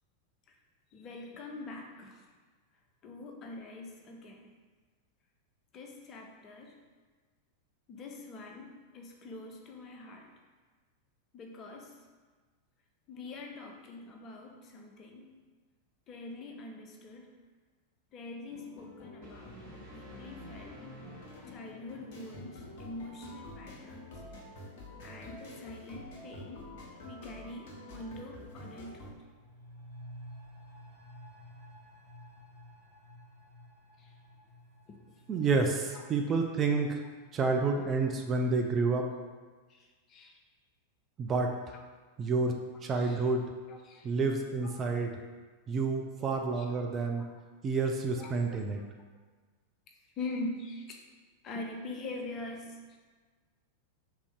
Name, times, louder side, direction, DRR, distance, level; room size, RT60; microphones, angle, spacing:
voice 1, 0.9-2.2 3.0-4.5 5.7-6.8 7.9-10.3 11.3-12.0 13.1-15.3 16.1-17.3 18.1-20.9 21.5-24.2 25.0-26.7 27.0-29.1 34.0-34.1 34.9-35.0 35.9-36.1 39.7-40.4 43.0-43.3 43.7-44.1 44.6-44.7 46.2-46.7 48.1-48.6 50.2-51.0 51.4-53.0, left 2 dB, 30° left, 2 dB, 0.5 m, -44 dB
sound 1, 18.5-29.1, left 1 dB, 50° left, 0.9 m, -48 dB
sound 2, 19.2-22.1, right 1 dB, 45° right, 1.2 m, -52 dB
sound 3, 28.9-38.3 38.6-38.7, equal, 5° right, 1.3 m, -53 dB
voice 2, 35.3-37.0 37.3-39.0 41.2-41.5 42.2-42.5 42.8-43.4 44.0-45.1 45.7-47.2 47.6-48.8, right 4 dB, 25° right, 3 dB, 0.3 m, -29 dB
3.4 x 2.6 x 3.5 m, 1.4 s
figure-of-eight pair, 90°, 0 cm